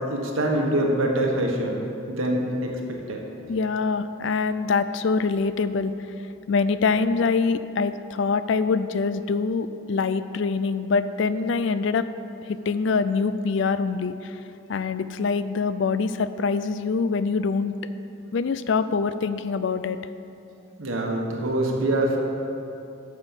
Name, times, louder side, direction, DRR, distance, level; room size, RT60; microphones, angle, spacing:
voice 1, 0.1-1.8 2.1-3.2 20.8-22.2, right 1 dB, 70° right, 0 dB, 1.5 m, -24 dB
voice 2, 3.5-6.1 6.5-12.1 12.5-14.4 14.7-17.8 18.3-20.0, left 4 dB, 60° left, 13 dB, 0.4 m, -24 dB
9.6 x 6.2 x 7.3 m, 2.8 s
head